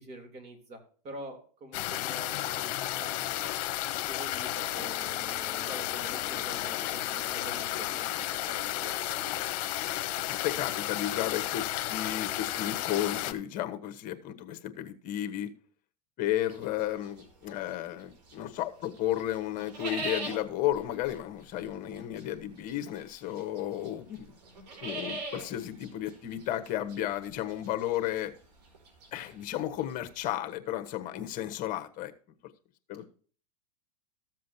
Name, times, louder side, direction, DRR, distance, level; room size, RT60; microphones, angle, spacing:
voice 1, 0.0-3.5 4.0-9.4, right 2 dB, 35° right, 3.2 m, -46 dB
sound 1, 1.7-13.3, left 14 dB, 55° left, 1.2 m, -33 dB
Guitar, 4.8-11.2, equal, 20° right, 2.0 m, -53 dB
voice 2, 10.3-15.5 16.2-24.3 24.8-28.3 29.1-32.1 32.9-33.0, left 12 dB, 40° left, 1.3 m, -33 dB
sound 2, 16.5-18.5 18.8-30.3, right 2 dB, 85° right, 4.2 m, -42 dB
14.0 x 7.5 x 2.8 m
supercardioid pair, 130°, 20 cm